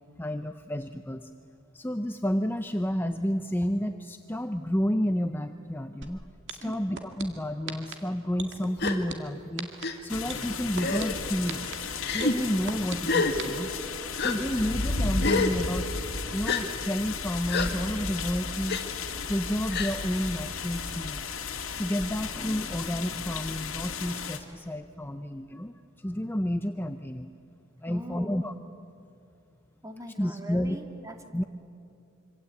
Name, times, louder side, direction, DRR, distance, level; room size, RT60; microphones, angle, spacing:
voice 1, 0.2-1.3 1.7-6.2 6.5-9.7 10.0-11.8 12.1-13.7 14.2-15.9 16.3-18.8 19.3-21.3 21.8-27.3 27.8-28.5 30.2-30.8 31.3-31.4, equal, 10° left, 8 dB, 0.6 m, -30 dB
sound 1, 6.0-6.1 6.5-7.2 7.7-7.9 8.4-9.1 9.6-9.8 10.3-11.0 11.5-11.7 12.2-13.0 13.4-13.5, right 5 dB, 60° right, 2.2 m, -35 dB
voice 2, 6.6-7.0 27.9-28.7 29.8-31.2, equal, 15° right, 4 dB, 2.4 m, -42 dB
Gasp, 8.8-9.0 9.8-9.9 10.8-11.2 12.0-12.3 13.1-13.3 14.2-14.3 15.2-15.5 16.5-16.6 17.5-17.7 18.7-18.8 19.7-19.9, left 4 dB, 55° left, 2.1 m, -27 dB
sound 2, 10.1-24.4, left 4 dB, 80° left, 2.1 m, -34 dB
26.0 x 25.5 x 8.5 m, 2.6 s
head